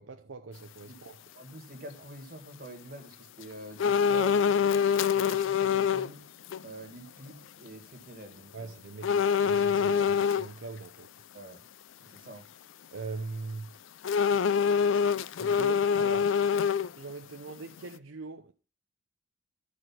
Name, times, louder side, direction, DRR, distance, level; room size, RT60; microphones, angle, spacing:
voice 1, 0.0-1.2 8.5-11.1 12.9-13.7 15.4-16.4 17.0-18.5, right 3 dB, 75° right, 0.7 m, -41 dB
voice 2, 1.4-4.4 5.1-6.3 6.6-8.8 11.3-11.6 12.0-12.5, right 2 dB, 45° right, 1.8 m, -46 dB
sound 1, 3.8-6.1 6.5-6.6 9.0-10.5 14.0-17.1 17.5-17.6, left 7 dB, 70° left, 0.4 m, -25 dB
12.5 x 4.8 x 5.9 m
head